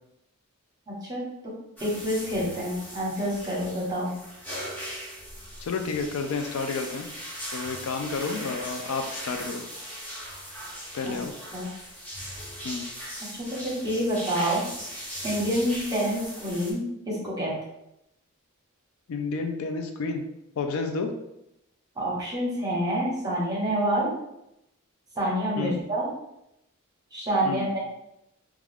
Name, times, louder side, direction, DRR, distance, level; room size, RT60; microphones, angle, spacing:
voice 1, 0.9-1.2 1.8-4.1 11.0-11.1 11.5-11.7 13.3-14.6 15.2-17.5 22.0-24.1 25.2-26.1 27.1-27.8, right 1 dB, 20° right, -5 dB, 1.0 m, -27 dB
sound 1, 1.8-16.7, equal, 10° left, 0.6 m, -39 dB
voice 2, 5.6-7.1 7.5-9.6 10.9-11.3 12.6-12.9 19.1-20.2 20.6-21.1 25.6-25.8 27.4-27.7, left 4 dB, 75° left, 5 dB, 0.4 m, -30 dB
2.3 x 2.3 x 3.4 m, 0.84 s
head